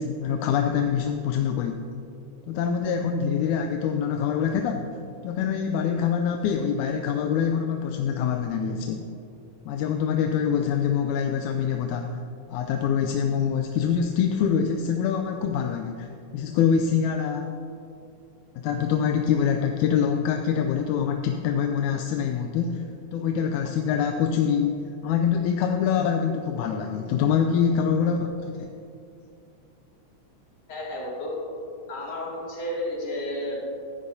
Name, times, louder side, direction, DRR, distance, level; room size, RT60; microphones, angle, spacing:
voice 1, 0.0-1.9 2.5-4.9 5.2-9.1 9.7-12.2 12.5-16.1 16.3-17.5 18.6-22.8 23.1-28.3 28.6-28.7, left 7 dB, 85° left, 4 dB, 2.0 m, -25 dB
voice 2, 30.7-31.3 31.9-33.7, left 1 dB, 60° left, -5 dB, 3.4 m, -32 dB
16.0 x 10.0 x 2.7 m, 2.6 s
omnidirectional pair, 3.4 m